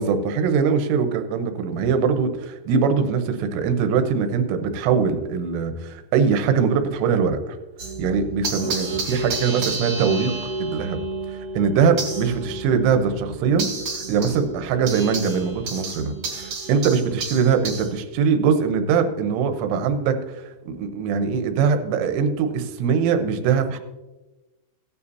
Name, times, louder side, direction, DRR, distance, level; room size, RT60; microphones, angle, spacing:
voice 1, 0.0-7.4 8.0-10.3 10.6-11.0 11.3-13.7 13.9-16.1 16.7-23.8, right 6 dB, 80° right, 7 dB, 3.3 m, -22 dB
sound 1, 7.8-18.0, right 3 dB, 40° right, 2.2 m, -31 dB
16.0 x 9.6 x 2.8 m, 1.1 s
omnidirectional pair, 5.7 m